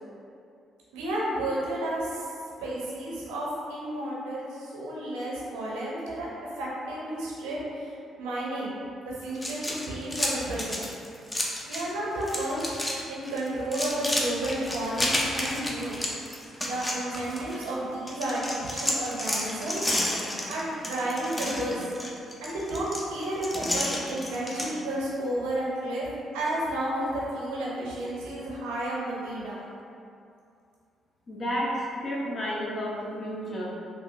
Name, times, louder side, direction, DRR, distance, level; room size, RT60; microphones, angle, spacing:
voice 1, 0.9-2.3 2.6-6.3 6.6-8.7 9.0-10.9 11.7-16.0 16.6-19.9 20.5-21.8 22.4-26.1 26.3-29.8, right 1 dB, 80° right, -5 dB, 0.6 m, -32 dB
sound 1, 9.3-11.9 12.2-13.0 13.2-17.7 18.1-24.7, left 1 dB, 20° left, 0.6 m, -31 dB
voice 2, 31.3-33.7, equal, 50° left, -5 dB, 0.7 m, -31 dB
3.5 x 2.3 x 2.5 m, 2.5 s
hypercardioid pair, 50°, 0 cm